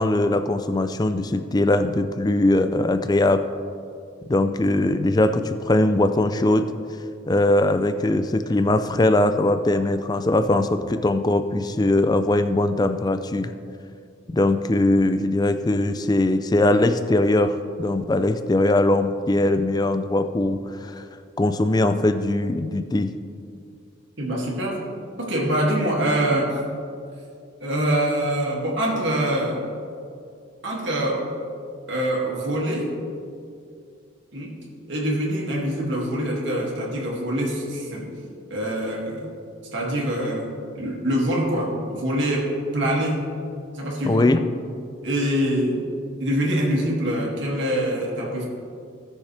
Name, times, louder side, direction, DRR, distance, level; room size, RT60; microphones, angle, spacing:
voice 1, 0.0-3.5 4.3-6.7 7.3-13.5 14.3-21.0 21.4-23.1 44.0-44.4, left 2 dB, 20° left, 9 dB, 0.4 m, -21 dB
voice 2, 24.2-24.8 25.2-26.6 27.6-29.6 30.6-31.3 31.9-32.9 34.3-34.6 34.9-38.1 38.5-39.3 39.7-43.2 43.7-44.3 45.0-45.8 46.2-48.4, right 1 dB, 60° right, -3 dB, 2.3 m, -24 dB
17.5 x 6.5 x 3.3 m, 2.4 s
head